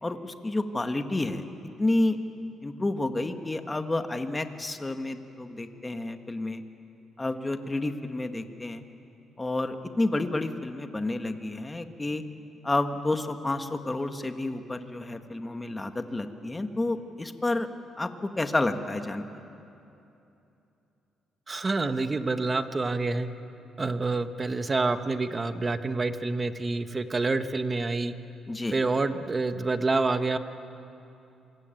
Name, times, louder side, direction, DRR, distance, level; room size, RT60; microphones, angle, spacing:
voice 1, 0.0-1.4 1.8-2.2 2.6-6.6 7.2-8.8 9.4-12.2 12.6-17.7 18.0-19.3 28.5-28.8, left 2 dB, 20° left, 7 dB, 1.8 m, -30 dB
voice 2, 21.5-23.3 23.8-28.1 28.7-30.4, right 3 dB, 30° right, 9 dB, 1.4 m, -27 dB
26.5 x 23.5 x 9.2 m, 2.8 s
cardioid pair, 90°, 0 cm